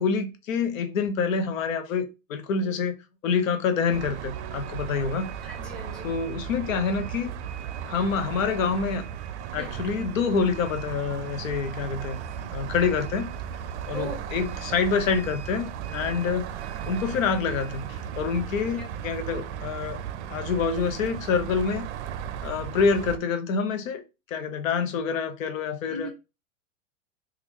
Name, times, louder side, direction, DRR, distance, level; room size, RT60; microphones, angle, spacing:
voice 1, 0.0-2.9 3.2-5.3 6.0-7.3 7.9-9.0 9.5-12.2 12.5-13.3 13.9-16.5 16.9-17.9 18.2-20.0 20.3-21.9 22.4-24.0 24.3-26.1, left 5 dB, 85° left, 0.8 m, -27 dB
sound 1, 3.9-23.2, right 9 dB, 60° right, 0.5 m, -36 dB
voice 2, 5.4-6.1 9.6-9.8 13.9-14.2 18.8-18.9 25.9-26.1, equal, ahead, 0.5 m, -37 dB
3.6 x 2.3 x 3.1 m
supercardioid pair, 165°, 39 cm